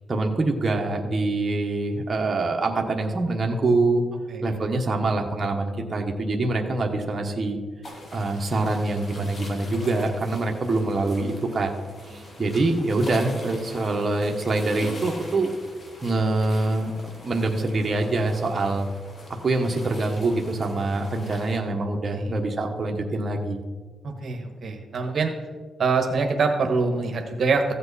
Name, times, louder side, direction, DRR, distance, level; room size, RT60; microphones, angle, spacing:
voice 1, 0.1-4.0 4.4-7.6 8.1-11.7 12.0-15.5 16.0-18.9 19.4-23.6, right 2 dB, 35° right, 1 dB, 1.3 m, -25 dB
sound 1, 7.8-21.6, left 1 dB, 45° left, 2.5 m, -42 dB
voice 2, 24.2-25.3 25.8-27.6, right 4 dB, 60° right, 4 dB, 1.2 m, -24 dB
15.0 x 7.7 x 4.2 m, 1.4 s
cardioid pair, 95°, 0 cm